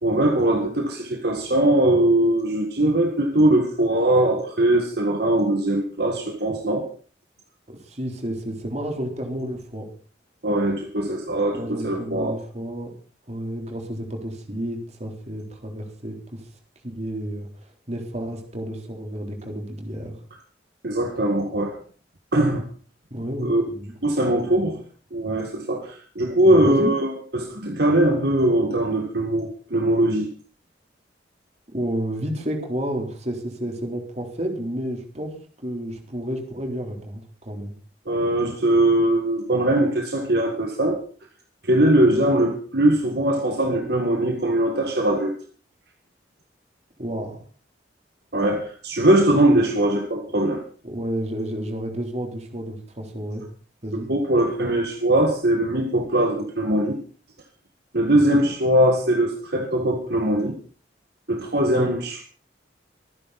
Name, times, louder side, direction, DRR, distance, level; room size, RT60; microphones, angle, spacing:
voice 1, 0.0-6.9 10.4-12.4 20.8-21.8 22.3-22.7 23.4-23.6 24.0-24.8 25.1-30.3 38.1-41.0 41.6-45.4 48.3-50.6 53.9-57.0 57.9-60.6 61.3-62.2, right 1 dB, 60° right, 3 dB, 1.9 m, -21 dB
voice 2, 7.7-9.9 11.5-12.9 13.3-16.4 16.8-20.1 23.1-23.9 26.4-26.9 31.7-35.3 35.6-37.7 47.0-47.4 50.8-53.4 53.8-54.1 58.1-58.5 61.7-61.9, right 1 dB, 35° right, 3 dB, 3.8 m, -31 dB
25.0 x 10.0 x 4.2 m, 0.39 s
head